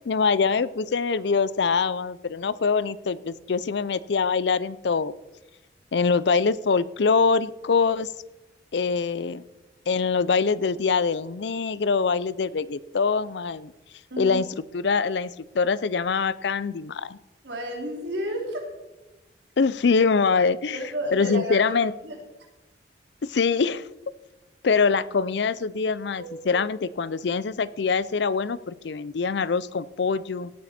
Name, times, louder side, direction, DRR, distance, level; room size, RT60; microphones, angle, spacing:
voice 1, 0.0-5.1 5.9-8.1 8.7-9.4 9.9-13.7 14.2-14.5 14.7-17.2 19.6-20.8 21.1-21.9 23.2-23.9 24.6-30.5, left 5 dB, 70° left, 18 dB, 0.5 m, -24 dB
voice 2, 14.1-14.4 17.4-18.6 20.7-21.8 22.0-22.2 26.2-26.6, equal, 70° right, 2 dB, 3.1 m, -32 dB
17.0 x 9.4 x 4.3 m, 1.1 s
head